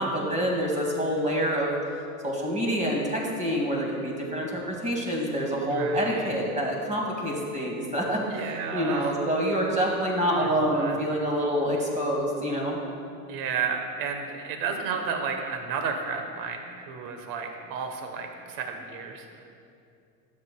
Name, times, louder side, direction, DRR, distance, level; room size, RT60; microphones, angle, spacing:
voice 1, 0.0-1.7 2.2-12.8, equal, 15° right, -2 dB, 2.0 m, -27 dB
voice 2, 5.7-6.3 8.3-9.2 10.4-11.0 13.3-19.5, right 5 dB, 50° right, 4 dB, 1.1 m, -32 dB
12.5 x 7.7 x 2.3 m, 2.5 s
supercardioid pair, 110°, 43 cm